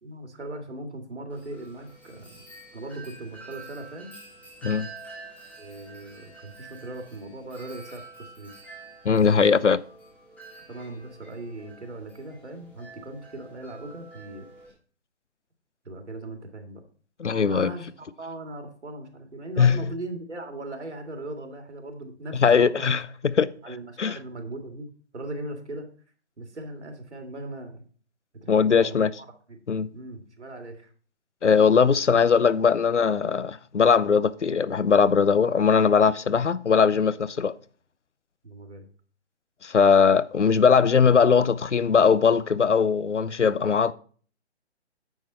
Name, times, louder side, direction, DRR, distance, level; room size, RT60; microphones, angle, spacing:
voice 1, 0.0-2.4 2.7-4.1 5.6-8.5 9.3-9.7 10.7-14.5 15.8-16.8 17.5-17.9 18.2-22.9 23.6-24.9 25.1-25.9 26.4-27.8 28.3-29.6 29.9-30.9 38.4-38.9, right 2 dB, 75° right, 2.4 m, -39 dB
Wind chime, 1.3-14.7, right 3 dB, 5° left, 1.4 m, -47 dB
voice 2, 9.0-9.8 17.2-17.7 19.6-19.8 22.3-23.5 24.0-24.1 28.5-29.1 29.7-29.9 31.4-37.5 39.6-43.9, left 6 dB, 85° left, 0.7 m, -20 dB
9.3 x 6.6 x 4.3 m
figure-of-eight pair, 140°, 35 cm